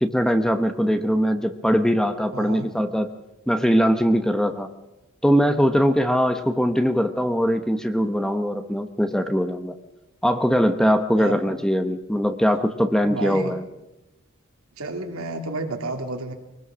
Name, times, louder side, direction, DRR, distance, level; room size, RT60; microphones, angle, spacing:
voice 1, 0.0-3.1 3.5-4.7 5.2-9.7 10.2-13.6, equal, 5° left, 8 dB, 0.9 m, -21 dB
voice 2, 2.3-2.7 11.1-11.4 13.0-13.5 14.8-16.3, right 2 dB, 70° right, 4 dB, 2.8 m, -31 dB
22.0 x 20.5 x 6.2 m, 0.93 s
head